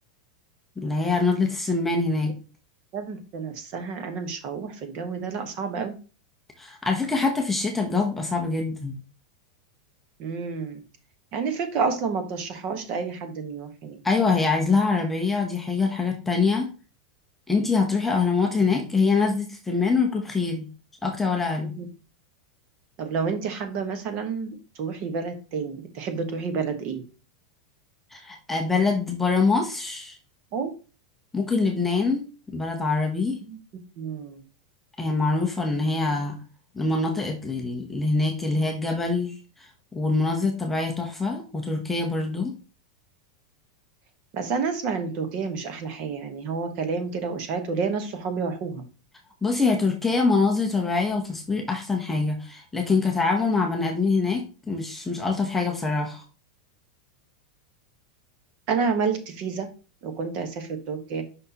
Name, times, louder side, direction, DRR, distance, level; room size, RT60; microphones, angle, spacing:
voice 1, 0.8-2.3 6.6-9.0 14.0-16.7 17.5-20.7 21.0-21.7 28.1-30.2 31.3-33.4 35.0-36.4 36.8-42.5 49.4-56.2, left 4 dB, 5° left, 1 dB, 0.7 m, -24 dB
voice 2, 2.9-5.9 10.2-10.8 11.3-14.0 21.6-21.9 23.0-27.0 30.5-30.7 33.5-33.6 34.0-34.4 44.3-48.8 58.7-59.7 60.0-61.2, right 5 dB, 35° right, 7 dB, 1.1 m, -29 dB
6.1 x 5.6 x 2.8 m, 0.33 s
supercardioid pair, 175°, 4 cm